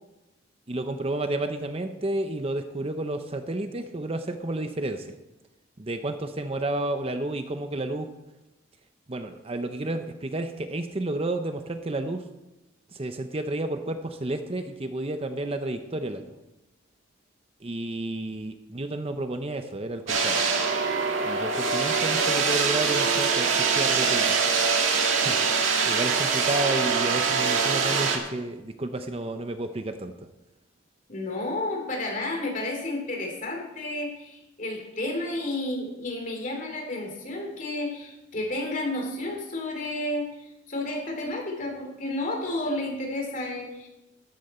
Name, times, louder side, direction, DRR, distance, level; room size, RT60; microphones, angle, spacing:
voice 1, 0.7-5.1 5.8-8.1 9.1-12.3 12.9-16.2 17.6-20.4 21.2-24.4 25.2-25.5 25.9-30.1, right 2 dB, 30° right, 8 dB, 0.7 m, -31 dB
sound 1, 20.1-28.2, right 5 dB, 75° right, 2.0 m, -24 dB
voice 2, 31.1-43.9, left 1 dB, 40° left, 1 dB, 2.9 m, -31 dB
13.5 x 11.5 x 4.3 m, 1.0 s
head